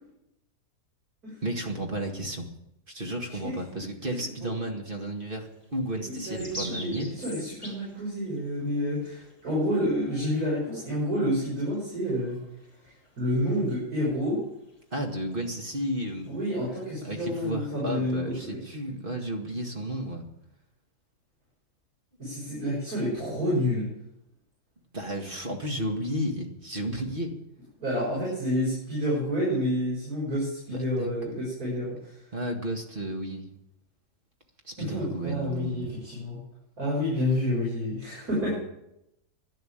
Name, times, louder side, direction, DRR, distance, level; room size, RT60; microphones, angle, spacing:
voice 1, 1.4-2.5 2.9-7.1 14.9-16.4 17.0-20.2 24.9-27.4 28.3-28.4 30.7-31.1 32.3-33.5 34.6-36.0 38.4-38.6, right 1 dB, 30° right, 3 dB, 2.0 m, -33 dB
sound 1, 5.2-17.3, equal, 15° left, 4.3 m, -46 dB
voice 2, 6.0-12.4 13.2-14.4 16.3-18.6 22.2-23.9 27.8-32.1 34.8-36.4 36.8-38.6, equal, 60° right, -7 dB, 6.5 m, -29 dB
11.5 x 11.5 x 8.8 m, 0.84 s
omnidirectional pair, 1.8 m